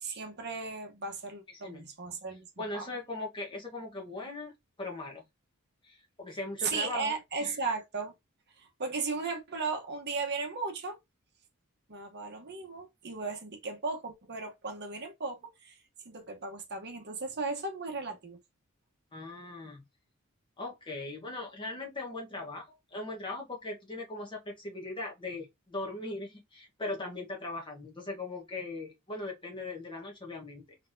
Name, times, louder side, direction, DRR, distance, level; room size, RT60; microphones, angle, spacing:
voice 1, 0.0-2.9 6.6-8.1 8.6-11.0 11.9-15.8 16.0-18.4, right 4 dB, 50° right, 1.0 m, -36 dB
voice 2, 1.5-1.9 2.6-4.5 4.8-5.3 5.8-7.1 7.4-7.6 19.1-19.8 20.6-30.8, left 2 dB, 20° left, 1.1 m, -39 dB
4.0 x 3.3 x 2.6 m
head